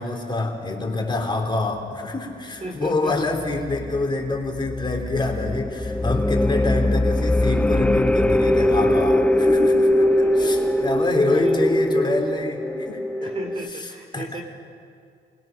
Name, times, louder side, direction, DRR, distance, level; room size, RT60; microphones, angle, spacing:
voice 1, 0.0-13.3 14.1-14.4, left 2 dB, 25° left, 1 dB, 3.4 m, -26 dB
voice 2, 2.6-3.1 10.0-10.9 11.3-11.6 13.2-14.4, right 2 dB, 30° right, 2 dB, 3.1 m, -36 dB
sound 1, 3.4-13.7, left 1 dB, 5° left, 0.6 m, -21 dB
26.5 x 21.5 x 6.0 m, 2.3 s
cardioid pair, 90°, 20 cm